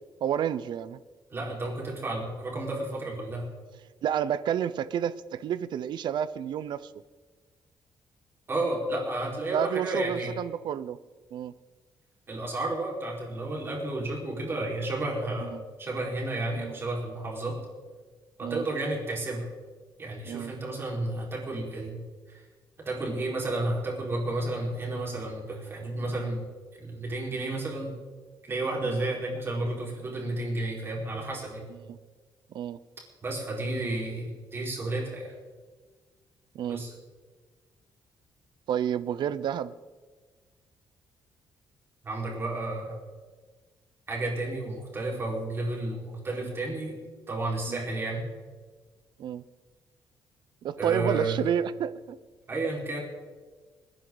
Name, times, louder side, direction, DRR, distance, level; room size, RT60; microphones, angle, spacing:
voice 1, 0.2-1.0 4.0-6.9 9.5-11.0 11.3-11.5 15.5-15.6 16.6-16.8 18.4-18.6 20.3-20.5 23.0-23.2 28.8-29.0 31.9-32.0 32.5-32.8 36.5-36.8 38.7-39.7 47.7-47.8 49.2-49.4 50.6-52.2, right 9 dB, 65° right, 16 dB, 0.7 m, -30 dB
voice 2, 1.3-3.4 8.5-10.3 12.3-15.5 15.8-17.6 18.4-19.5 20.0-22.0 22.3-22.4 22.8-26.4 26.8-27.9 28.5-31.6 33.2-35.3 36.7-36.9 42.0-43.0 44.1-47.0 47.3-48.2 50.8-51.4 52.5-53.0, right 2 dB, 30° right, -2 dB, 4.7 m, -32 dB
27.0 x 10.0 x 4.0 m, 1.4 s
cardioid pair, 150°, 8 cm